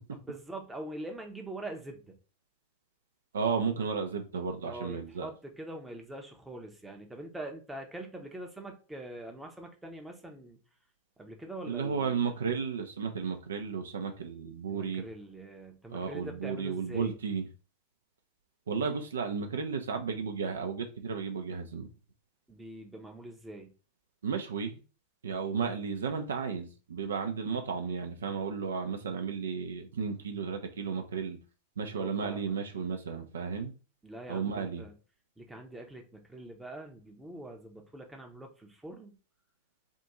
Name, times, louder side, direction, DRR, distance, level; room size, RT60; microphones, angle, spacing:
voice 1, 0.1-2.2 4.6-10.6 11.2-12.2 14.7-17.2 22.5-23.7 32.0-32.5 34.0-34.9 35.4-39.2, right 1 dB, 5° right, 0.8 m, -44 dB
voice 2, 3.3-5.3 11.7-15.0 15.9-17.4 18.7-21.9 24.2-24.8 25.2-31.4 31.8-33.7 34.3-34.8, right 5 dB, 65° right, 0.6 m, -33 dB
3.6 x 2.5 x 4.1 m
figure-of-eight pair, 90°, 0 cm